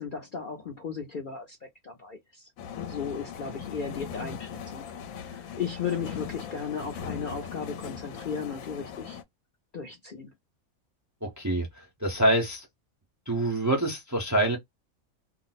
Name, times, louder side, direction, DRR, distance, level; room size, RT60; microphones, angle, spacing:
voice 1, 0.0-2.5 2.9-4.9 5.2-9.2 9.7-10.3, left 6 dB, 55° left, 0.6 m, -35 dB
sound 1, 2.6-9.2, left 7 dB, 75° left, 1.0 m, -39 dB
voice 2, 11.2-12.7 13.3-14.6, right 1 dB, 20° right, 0.5 m, -26 dB
2.6 x 2.0 x 3.9 m
omnidirectional pair, 1.5 m